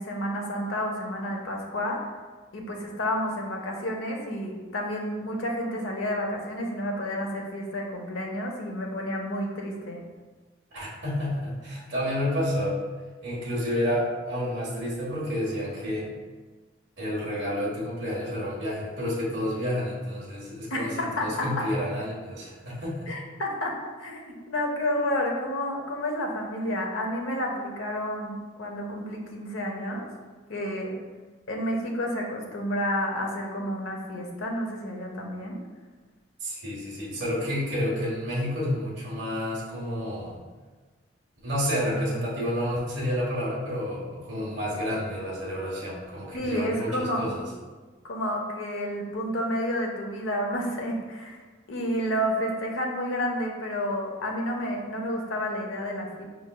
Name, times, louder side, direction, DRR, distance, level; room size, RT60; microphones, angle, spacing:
voice 1, 0.0-2.0 2.5-10.0 20.7-21.6 23.1-30.1 30.5-31.0 31.5-35.6 46.3-47.3 48.0-51.4 51.7-56.2, equal, 85° left, 1 dB, 0.7 m, -30 dB
voice 2, 10.7-12.8 13.2-16.1 17.0-20.9 21.2-23.1 36.4-40.4 41.4-47.4, equal, 60° right, -7 dB, 1.2 m, -30 dB
5.2 x 3.4 x 2.3 m, 1.3 s
head